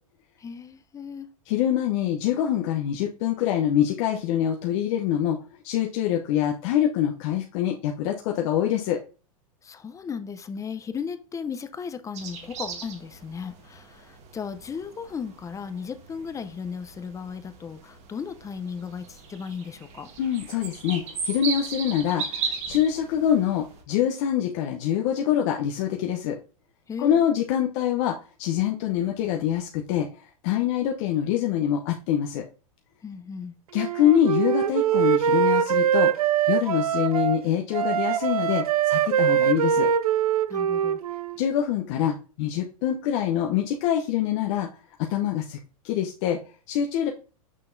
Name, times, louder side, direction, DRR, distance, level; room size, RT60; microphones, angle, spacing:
voice 1, 0.4-1.3 9.6-20.1 26.9-27.2 33.0-33.6 40.5-41.0, left 6 dB, 15° left, 0.6 m, -36 dB
voice 2, 1.5-9.0 20.2-26.4 27.0-30.1 30.4-32.4 33.7-36.1 36.5-39.9 41.4-44.7 45.0-45.6 45.8-46.4 46.7-47.1, left 10 dB, 55° left, 0.8 m, -25 dB
sound 1, 12.1-23.8, right 5 dB, 35° right, 1.5 m, -37 dB
Wind instrument woodwind instrument, 33.7-37.4 37.7-41.4, right 9 dB, 90° right, 0.4 m, -23 dB
6.5 x 5.4 x 2.6 m
hypercardioid pair, 110°, 18 cm